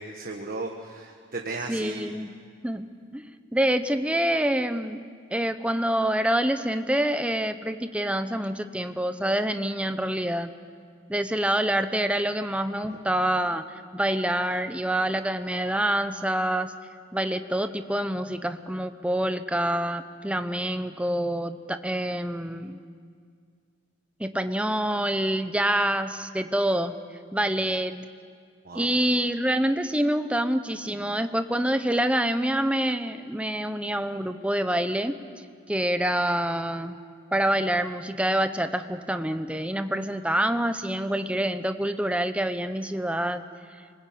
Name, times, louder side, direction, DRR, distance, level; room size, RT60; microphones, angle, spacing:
voice 1, 0.0-2.1 28.6-28.9, right 2 dB, 45° right, 2 dB, 1.5 m, -35 dB
voice 2, 1.7-2.3 2.6-2.9 3.1-5.0 5.3-10.5 11.1-16.7 17.1-22.8 24.2-27.0 27.3-28.1 28.7-35.2 35.7-37.0 37.3-43.4, right 1 dB, 5° right, 9 dB, 0.8 m, -26 dB
26.5 x 20.0 x 8.6 m, 2.1 s
head